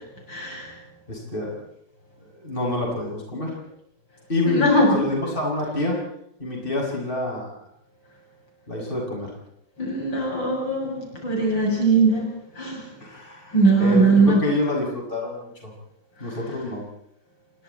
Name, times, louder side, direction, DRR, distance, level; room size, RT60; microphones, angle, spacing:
voice 1, 0.3-0.7 4.4-4.9 9.8-12.3 12.6-12.8 13.5-14.4 16.2-16.3, right 3 dB, 70° left, 0 dB, 8.0 m, -20 dB
voice 2, 1.1-1.5 2.4-3.5 4.3-6.0 6.4-7.5 8.7-9.3 13.0-15.7 16.2-16.8, left 2 dB, 25° left, -1 dB, 7.7 m, -27 dB
28.5 x 24.5 x 4.4 m, 0.74 s
omnidirectional pair, 2.1 m